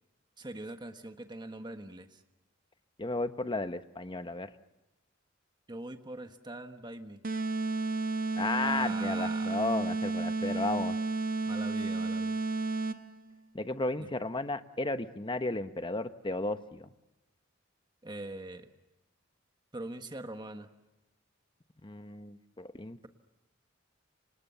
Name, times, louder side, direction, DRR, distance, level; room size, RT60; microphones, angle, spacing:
voice 1, 0.4-2.2 5.7-7.2 8.6-9.6 11.4-12.4 14.0-14.1 18.0-18.7 19.7-20.7, right 2 dB, 25° right, 7 dB, 1.3 m, -42 dB
voice 2, 3.0-4.5 8.4-11.0 13.5-16.9 21.8-23.1, left 2 dB, 25° left, 10 dB, 1.0 m, -34 dB
sound 1, 7.2-13.2, right 3 dB, 45° right, 1.1 m, -32 dB
29.0 x 26.0 x 6.9 m, 1.0 s
head